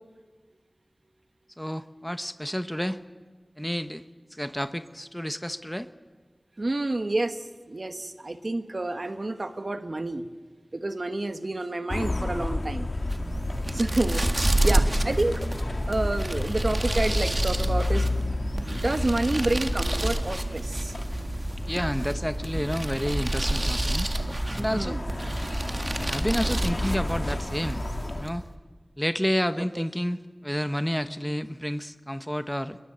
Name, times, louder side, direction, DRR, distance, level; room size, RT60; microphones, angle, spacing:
voice 1, 1.6-3.0 3.6-4.0 4.3-5.9 21.6-24.1 24.5-25.0 26.0-27.8 28.2-28.4 29.0-32.8, equal, 5° left, 11 dB, 0.9 m, -30 dB
voice 2, 6.6-10.3 10.7-12.9 13.7-14.2 14.6-15.4 15.9-18.1 18.6-20.9 24.7-25.0 29.8-29.9, right 2 dB, 55° right, 9 dB, 1.3 m, -29 dB
sound 1, 11.9-28.3, left 2 dB, 60° left, 1.8 m, -32 dB
sound 2, 12.9-28.5, right 1 dB, 40° right, 1.9 m, -29 dB
sound 3, 15.5-26.1, right 1 dB, 25° left, 5.3 m, -52 dB
28.0 x 21.5 x 8.0 m, 1.4 s
wide cardioid pair, 50°, 0 cm